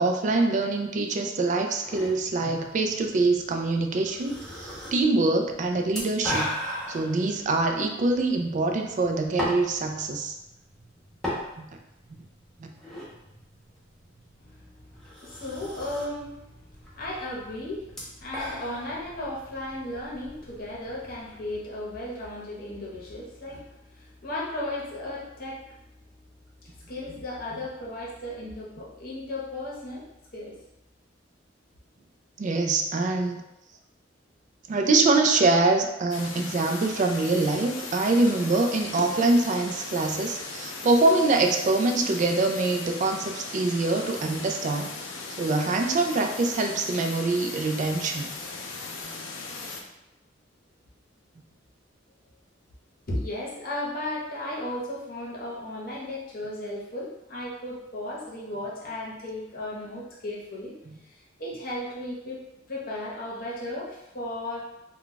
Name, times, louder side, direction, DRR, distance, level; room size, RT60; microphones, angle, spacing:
voice 1, 0.0-6.6 6.9-10.4 11.6-11.7 12.6-12.7 32.4-33.4 34.7-44.9 45.4-48.3 60.9-61.0, right 3 dB, 40° right, 4 dB, 0.3 m, -24 dB
sound 1, 1.8-21.6, left 1 dB, ahead, 0.7 m, -39 dB
voice 2, 14.4-16.3 16.9-17.9 18.2-23.6 23.9-25.7 26.6-30.0 30.3-30.6 53.1-60.8 61.1-62.4 62.7-64.6, left 1 dB, 50° left, -5 dB, 0.9 m, -35 dB
sound 2, 36.1-49.8, left 3 dB, 90° left, 0.5 m, -38 dB
2.3 x 2.2 x 3.8 m, 0.89 s
head